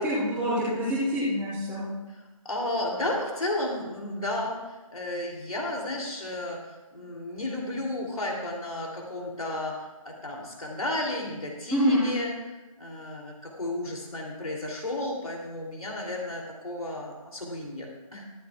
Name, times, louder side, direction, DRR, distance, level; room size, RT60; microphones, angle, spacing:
voice 1, 0.0-1.8 11.7-12.1, equal, 5° right, -15 dB, 3.4 m, -26 dB
voice 2, 2.4-18.3, left 1 dB, 85° left, -1 dB, 2.9 m, -33 dB
24.0 x 8.5 x 2.4 m, 1.1 s
figure-of-eight pair, 155°, 18 cm